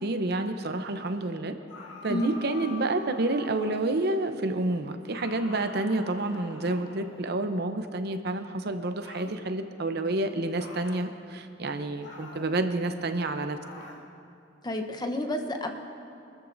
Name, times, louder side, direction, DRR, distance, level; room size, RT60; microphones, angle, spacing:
voice 1, 0.0-1.6 2.0-13.6, right 2 dB, 60° right, 8 dB, 0.7 m, -29 dB
sound 1, 1.7-4.0 5.1-7.4 9.0-9.4 10.6-11.1 12.0-12.5 13.6-14.1, left 2 dB, 80° left, 1.8 m, -46 dB
voice 2, 2.1-2.4 14.6-15.7, left 1 dB, 25° left, 5 dB, 0.9 m, -30 dB
25.0 x 13.0 x 2.6 m, 2.6 s
head